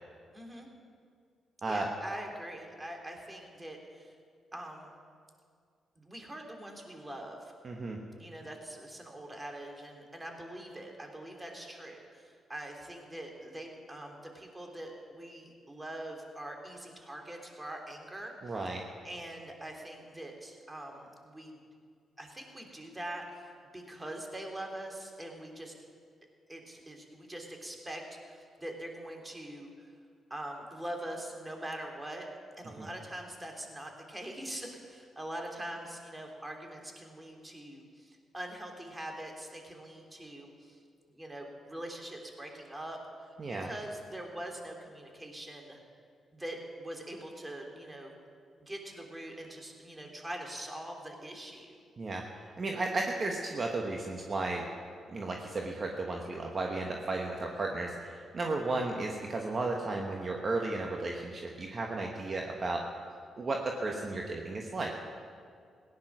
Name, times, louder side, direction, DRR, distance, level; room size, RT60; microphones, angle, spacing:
voice 1, 0.3-0.7 1.7-4.1 4.5-4.9 6.0-7.5 8.2-18.5 19.0-21.6 22.2-23.5 23.7-25.7 26.5-29.9 30.3-32.3 32.6-40.8 41.1-43.0 43.5-45.8 46.3-48.2 48.7-51.8, right 1 dB, 20° right, 2 dB, 3.2 m, -43 dB
voice 2, 7.6-8.0 18.4-18.8 32.8-32.9 43.4-43.7 52.0-52.2 52.6-54.7 55.1-62.8 63.4-64.9, right 2 dB, 45° right, 1 dB, 1.4 m, -34 dB
17.0 x 10.5 x 6.2 m, 2.2 s
supercardioid pair, 50°, 0 cm